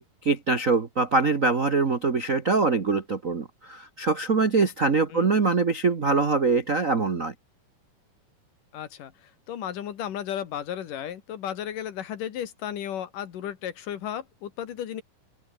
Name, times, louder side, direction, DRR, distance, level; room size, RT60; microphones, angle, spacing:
voice 1, 0.0-7.3, right 4 dB, 50° right, 1.0 m, -23 dB
voice 2, 8.7-15.0, left 10 dB, 75° left, 3.4 m, -34 dB
open air
omnidirectional pair, 3.8 m